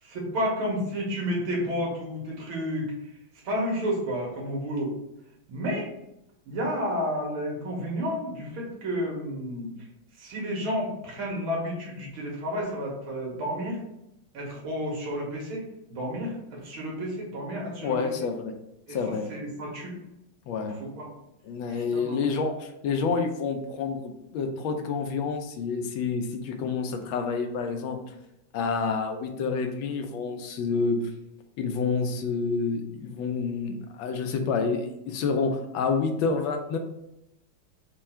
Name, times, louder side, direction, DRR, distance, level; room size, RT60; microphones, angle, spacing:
voice 1, 0.0-3.1 3.4-4.9 5.5-5.9 6.5-9.7 10.2-13.8 14.3-18.1 18.9-19.0 19.3-20.0 20.7-21.1 21.7-22.2, equal, 85° right, -2 dB, 2.0 m, -31 dB
voice 2, 17.8-18.5 18.9-19.3 20.5-20.8 21.5-24.0 24.3-28.0 28.5-31.0 31.6-36.8, left 5 dB, 80° left, 5 dB, 1.4 m, -28 dB
4.5 x 2.3 x 4.3 m, 0.84 s
omnidirectional pair, 2.2 m